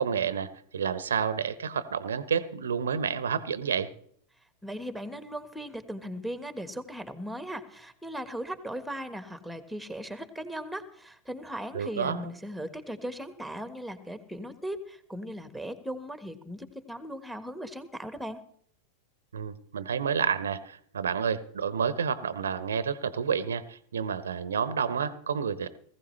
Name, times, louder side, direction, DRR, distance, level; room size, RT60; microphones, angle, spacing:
voice 1, 0.0-3.9 11.7-12.2 19.3-25.7, right 7 dB, 70° right, 15 dB, 0.9 m, -29 dB
voice 2, 4.6-18.4, equal, ahead, 10 dB, 1.5 m, -38 dB
19.5 x 15.5 x 3.3 m, 0.63 s
figure-of-eight pair, 90°, 0 cm